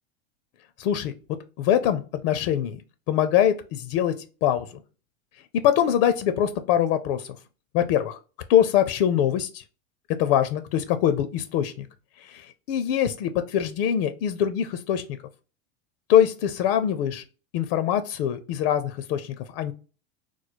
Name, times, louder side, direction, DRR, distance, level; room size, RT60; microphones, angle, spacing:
voice 1, 0.8-1.1 1.6-2.8 3.1-4.8 5.5-7.4 7.7-8.2 8.5-9.6 10.2-11.9 12.2-15.0 16.1-17.2 17.5-19.7, left 10 dB, 70° left, 10 dB, 0.5 m, -23 dB
3.1 x 2.0 x 4.0 m, 0.34 s
supercardioid pair, 110°, 31 cm